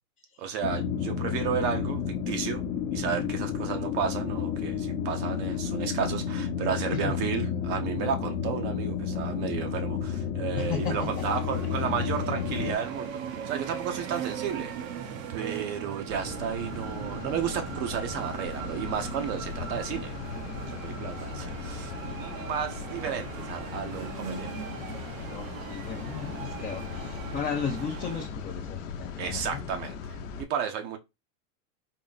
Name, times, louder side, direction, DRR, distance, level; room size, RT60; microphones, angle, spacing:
voice 1, 0.4-2.6 2.9-14.9 15.3-20.1 20.7-24.7 29.2-30.2 30.5-31.0, right 8 dB, 50° right, 0.7 m, -33 dB
sound 1, 0.6-12.8, left 7 dB, 45° left, 0.9 m, -31 dB
voice 2, 6.7-7.2 10.6-11.2 21.0-21.9 25.2-29.6, left 7 dB, 20° left, 0.5 m, -36 dB
sound 2, 10.6-28.3, right 7 dB, 80° right, 1.0 m, -39 dB
sound 3, 16.1-30.4, left 6 dB, 75° left, 0.8 m, -39 dB
3.8 x 2.1 x 3.9 m
supercardioid pair, 130°, 39 cm